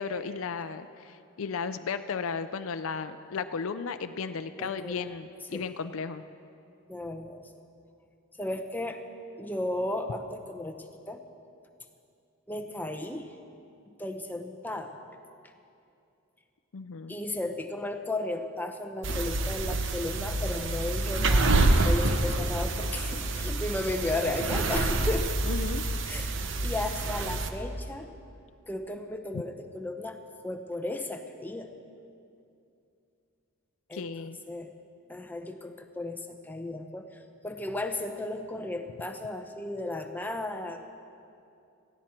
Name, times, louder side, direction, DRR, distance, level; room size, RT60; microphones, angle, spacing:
voice 1, 0.0-6.2 16.7-17.2 25.5-25.9 29.3-29.4 33.9-34.4, left 5 dB, 70° left, 10 dB, 0.5 m, -35 dB
voice 2, 4.6-5.1 5.5-5.7 6.9-7.5 8.4-9.0 9.4-10.8 11.1-11.2 12.5-13.3 14.0-15.0 17.1-25.5 26.0-28.1 28.7-30.2 30.4-31.7 33.9-34.1 34.5-34.7 35.1-40.9, left 2 dB, 10° left, 5 dB, 0.7 m, -35 dB
sound 1, 19.0-27.5, right 2 dB, 55° right, 0.9 m, -27 dB
17.5 x 15.5 x 4.4 m, 2.6 s
head